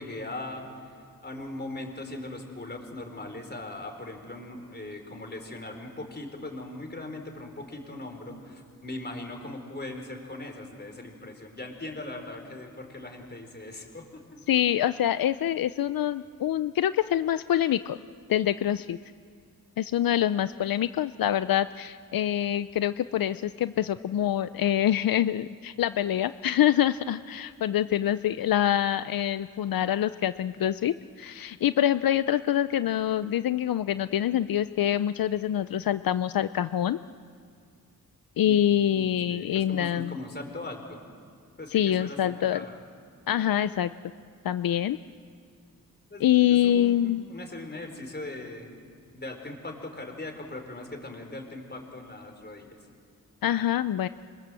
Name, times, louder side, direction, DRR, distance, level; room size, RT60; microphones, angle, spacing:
voice 1, 0.0-14.2 38.4-38.5 38.9-41.0 41.6-42.8 46.1-48.7 49.1-52.7, left 2 dB, 30° left, 4 dB, 4.4 m, -40 dB
voice 2, 14.5-18.0 18.3-19.0 19.8-37.0 38.4-40.2 41.7-42.6 43.3-43.9 44.4-45.0 46.2-47.2 53.4-54.1, left 11 dB, 80° left, 13 dB, 0.5 m, -25 dB
26.0 x 23.0 x 7.7 m, 2.2 s
wide cardioid pair, 95°, 34 cm